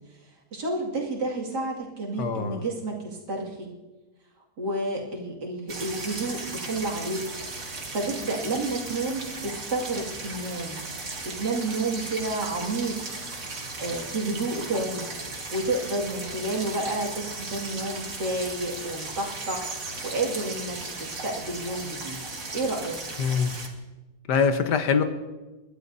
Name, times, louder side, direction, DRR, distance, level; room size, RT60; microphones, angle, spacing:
voice 1, 0.5-3.7 4.6-7.2 7.6-10.8 11.2-13.0 13.5-19.7 20.0-22.2 22.5-23.0, right 2 dB, 85° right, -2 dB, 2.9 m, -30 dB
voice 2, 2.2-2.6 23.2-23.6 24.3-25.0, left 6 dB, 90° left, 8 dB, 1.6 m, -23 dB
sound 1, 5.7-23.7, right 3 dB, 55° right, 2.1 m, -36 dB
29.0 x 11.5 x 2.7 m, 1.2 s
omnidirectional pair, 1.7 m